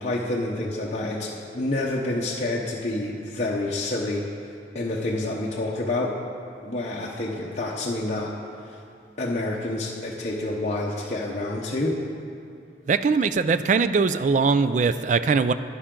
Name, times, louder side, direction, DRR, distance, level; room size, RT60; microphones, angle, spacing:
voice 1, 0.0-4.3 4.7-6.2 6.6-8.3 8.7-8.8 9.2-12.0, left 2 dB, 40° left, -4 dB, 0.8 m, -28 dB
voice 2, 12.9-15.5, right 4 dB, 40° right, 12 dB, 0.3 m, -21 dB
11.5 x 9.9 x 3.8 m, 2.6 s
head